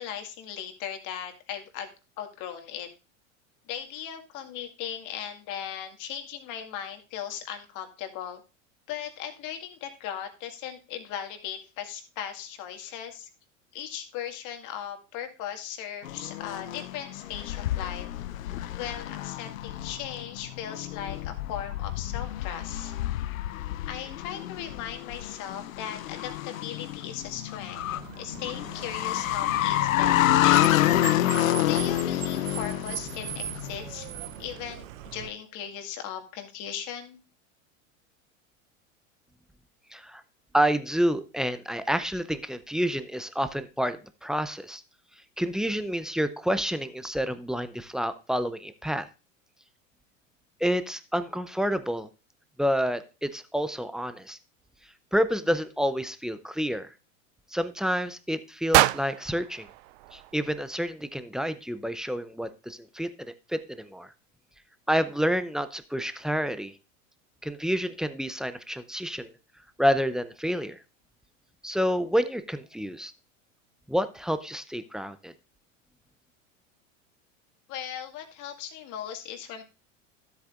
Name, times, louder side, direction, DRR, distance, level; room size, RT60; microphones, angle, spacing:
voice 1, 0.0-1.9 2.2-2.9 3.7-8.4 8.9-13.3 13.7-18.1 18.8-22.9 23.9-27.8 28.2-30.8 31.2-34.1 34.4-37.2 77.7-79.6, left 9 dB, 50° left, 6 dB, 1.9 m, -38 dB
sound 1, 16.0-34.1, left 14 dB, 80° left, 0.6 m, -28 dB
Car, 27.8-35.3, right 13 dB, 75° right, 0.8 m, -40 dB
voice 2, 39.9-40.2 40.5-44.8 45.4-49.1 50.6-52.1 52.6-54.4 55.1-56.9 57.5-59.7 60.1-64.1 64.9-66.7 67.4-69.3 69.8-70.8 71.6-73.1 73.9-75.3, equal, ahead, 11 dB, 0.5 m, -29 dB
sound 2, 58.7-60.9, right 18 dB, 55° right, 0.5 m, -26 dB
13.0 x 8.0 x 2.4 m, 0.31 s
hypercardioid pair, 95°, 39 cm